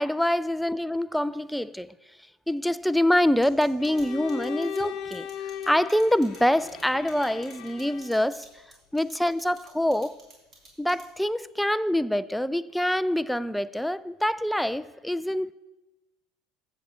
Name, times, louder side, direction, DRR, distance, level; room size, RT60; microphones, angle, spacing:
voice 1, 0.0-1.9 2.5-5.3 5.7-8.5 8.9-10.2 10.8-15.5, left 1 dB, ahead, 0.3 m, -25 dB
sound 1, 3.4-11.3, right 2 dB, 35° right, 3.2 m, -52 dB
Bowed string instrument, 3.8-8.3, left 9 dB, 50° left, 0.7 m, -38 dB
15.0 x 7.2 x 2.9 m
figure-of-eight pair, 70°, 0 cm